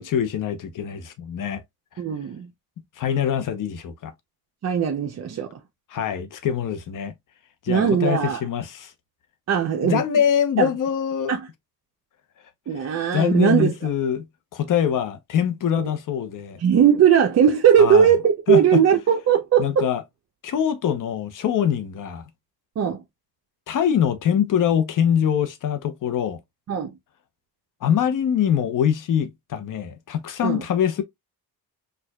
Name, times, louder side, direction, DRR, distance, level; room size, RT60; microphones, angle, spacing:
voice 1, 0.0-1.6 3.0-4.1 5.9-7.1 7.6-8.9 9.8-11.3 12.8-12.9 13.1-14.2 14.5-16.6 17.8-18.1 18.5-18.8 19.6-20.0 20.4-22.2 23.7-26.4 27.8-31.0, left 9 dB, 55° left, 0.8 m, -23 dB
voice 2, 2.0-2.5 4.6-5.5 7.7-8.4 9.5-10.0 10.6-10.7 11.3-11.5 12.7-13.7 16.6-19.9 22.8-23.0 26.7-26.9 30.4-30.6, right 8 dB, 40° right, 0.6 m, -19 dB
4.5 x 2.4 x 2.2 m
cardioid pair, 100°, 39 cm